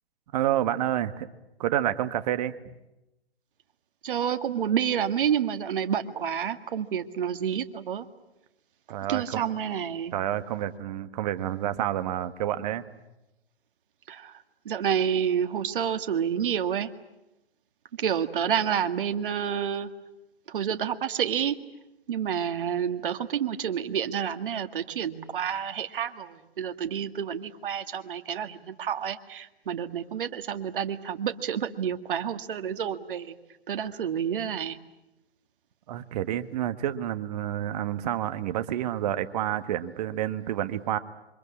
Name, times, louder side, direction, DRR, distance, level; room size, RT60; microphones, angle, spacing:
voice 1, 0.3-1.3 1.6-2.5 8.9-9.4 10.1-12.8 35.9-41.0, right 12 dB, 40° right, 11 dB, 1.6 m, -29 dB
voice 2, 4.0-8.1 9.1-10.1 14.1-14.3 14.7-16.9 18.0-19.9 20.5-21.6 22.1-33.4 33.7-34.8, right 8 dB, 55° right, 8 dB, 2.0 m, -29 dB
27.5 x 25.0 x 8.6 m, 0.95 s
hypercardioid pair, 135°, 32 cm